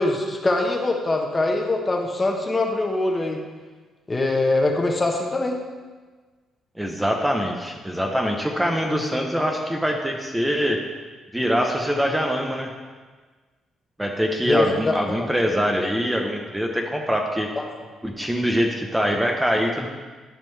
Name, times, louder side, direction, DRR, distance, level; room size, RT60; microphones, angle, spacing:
voice 1, 0.0-3.4 4.1-5.6 14.4-15.3 17.6-17.7, left 2 dB, 25° left, 1 dB, 1.2 m, -23 dB
voice 2, 6.8-10.8 11.3-12.7 14.0-17.5 18.0-19.9, equal, 5° right, 1 dB, 0.9 m, -23 dB
12.0 x 5.2 x 3.4 m, 1.4 s
cardioid pair, 90°, 0 cm